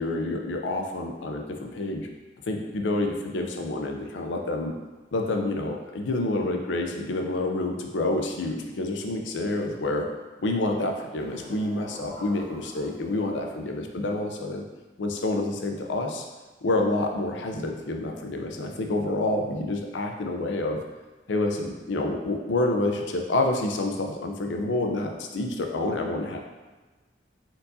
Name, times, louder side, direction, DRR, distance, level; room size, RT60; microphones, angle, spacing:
voice 1, 0.0-2.1 2.5-4.7 5.1-10.1 10.4-14.6 15.0-16.3 16.6-20.8 21.3-26.4, left 2 dB, 85° left, 3 dB, 0.5 m, -28 dB
sound 1, 11.2-13.6, equal, 65° right, 0.6 m, -44 dB
4.5 x 3.9 x 2.7 m, 1.3 s
head